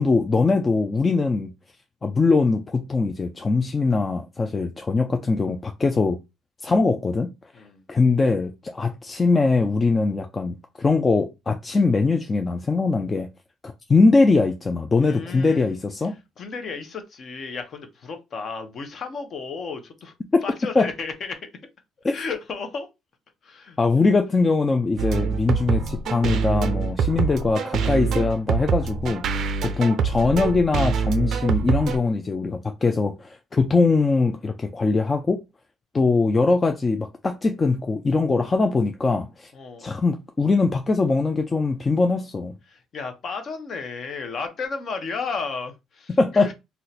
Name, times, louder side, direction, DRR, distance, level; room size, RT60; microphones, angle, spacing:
voice 1, 0.0-1.5 2.0-6.2 6.6-7.3 7.9-13.3 13.9-16.2 20.3-20.4 20.8-20.9 22.0-22.2 23.8-29.2 29.8-35.4 35.9-39.5 39.8-42.5 46.2-46.5, left 3 dB, 25° left, 0.4 m, -21 dB
voice 2, 7.5-7.8 15.0-15.8 16.4-20.1 20.4-21.5 22.1-22.9 23.4-23.8 39.5-39.9 42.7-46.5, left 4 dB, 45° left, 0.7 m, -33 dB
sound 1, 25.0-32.0, right 6 dB, 55° right, 0.4 m, -25 dB
2.8 x 2.1 x 4.0 m
cardioid pair, 110°, 0 cm